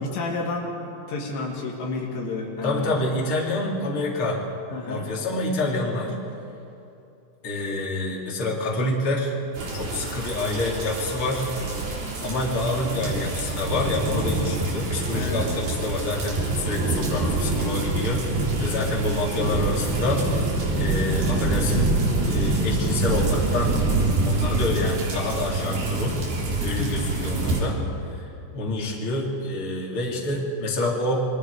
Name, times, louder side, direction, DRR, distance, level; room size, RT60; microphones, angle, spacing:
voice 1, 0.0-3.0 4.7-5.1 15.1-15.4 26.8-27.1, left 3 dB, 75° left, -1 dB, 4.4 m, -31 dB
voice 2, 2.6-4.4 4.8-6.1 7.4-9.3 9.7-11.5 12.2-21.9 22.3-23.8 24.2-26.2 26.6-31.2, left 2 dB, 30° left, -3 dB, 3.7 m, -27 dB
sound 1, 9.5-27.6, right 2 dB, 60° right, 5.6 m, -26 dB
28.0 x 24.0 x 5.0 m, 2.8 s
omnidirectional pair, 5.1 m